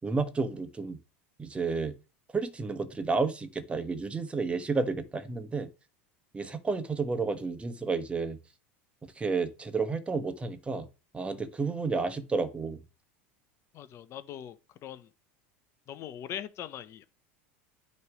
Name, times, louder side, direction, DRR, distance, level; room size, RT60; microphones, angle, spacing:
voice 1, 0.0-1.0 1.4-2.0 2.3-5.7 6.3-8.4 9.2-10.9 11.1-12.8, right 4 dB, 15° right, 1.1 m, -31 dB
voice 2, 13.7-14.6 14.8-15.1 15.9-17.1, left 10 dB, 45° left, 0.8 m, -41 dB
9.4 x 3.3 x 4.9 m
hypercardioid pair, 100°, 7 cm